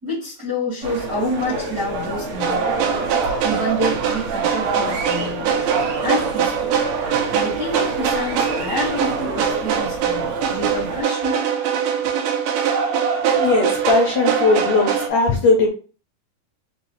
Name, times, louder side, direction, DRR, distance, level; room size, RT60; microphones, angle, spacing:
voice 1, 0.0-2.7 3.4-5.5 6.0-6.7 7.3-11.4, equal, 50° right, -7 dB, 1.2 m, -27 dB
sound 1, 0.8-11.0, right 1 dB, 70° right, 1.8 m, -29 dB
sound 2, 2.4-15.1, right 7 dB, 85° right, 1.9 m, -22 dB
voice 2, 13.3-15.7, left 3 dB, 90° left, -1 dB, 1.5 m, -18 dB
5.6 x 2.1 x 2.9 m, 0.37 s
omnidirectional pair, 4.2 m